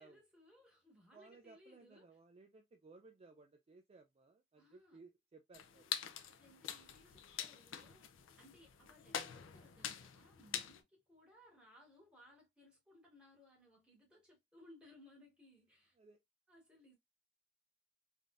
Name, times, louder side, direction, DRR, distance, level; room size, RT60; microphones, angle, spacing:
voice 1, 0.0-2.1 4.6-5.0 6.2-8.1 8.4-15.9 16.5-17.0, left 1 dB, 5° right, 1.7 m, -64 dB
voice 2, 1.1-6.0 16.0-16.2, right 4 dB, 30° right, 0.3 m, -61 dB
sound 1, 5.5-10.8, left 9 dB, 90° left, 0.5 m, -45 dB
3.4 x 2.6 x 2.3 m
head